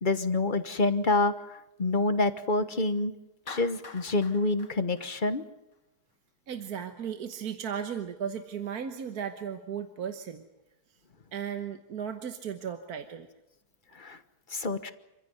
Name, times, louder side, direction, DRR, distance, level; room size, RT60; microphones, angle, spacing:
voice 1, 0.0-1.3 1.8-3.1 3.5-5.4 14.0-14.2 14.5-14.9, left 2 dB, 35° left, 11 dB, 1.3 m, -27 dB
Clapping, 3.5-5.8, left 4 dB, 55° left, 1.9 m, -46 dB
voice 2, 6.5-10.4 11.3-13.3, right 8 dB, 75° right, 7 dB, 1.7 m, -36 dB
27.5 x 15.5 x 9.4 m, 0.94 s
omnidirectional pair, 1.6 m